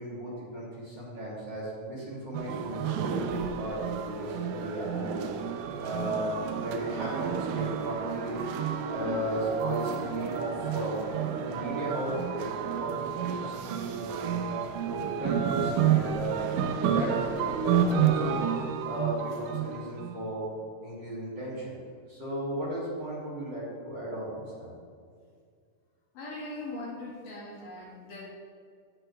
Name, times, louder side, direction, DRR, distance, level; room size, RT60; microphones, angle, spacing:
voice 1, 0.0-5.2 5.8-8.4 8.9-11.0 11.4-14.4 14.8-16.5 16.9-17.4 17.7-18.4 18.8-20.5 20.8-21.8 22.1-24.7, right 1 dB, 35° right, -8 dB, 2.9 m, -35 dB
sound 1, 2.3-20.2, right 8 dB, 85° right, 2.1 m, -30 dB
voice 2, 26.1-28.2, left 2 dB, 75° left, -4 dB, 3.6 m, -40 dB
17.0 x 6.1 x 3.3 m, 2.1 s
omnidirectional pair, 3.8 m